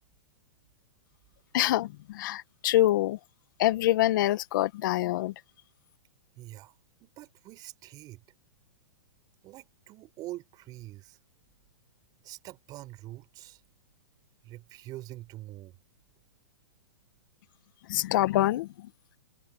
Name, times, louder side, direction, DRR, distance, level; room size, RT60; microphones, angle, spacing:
voice 1, 1.5-3.2 3.6-5.3 17.9-18.9, left 15 dB, 55° left, 1.4 m, -25 dB
voice 2, 6.4-8.2 9.4-11.2 12.2-13.6 14.4-15.8, right 17 dB, 30° right, 5.0 m, -45 dB
hypercardioid pair, 140°, 13 cm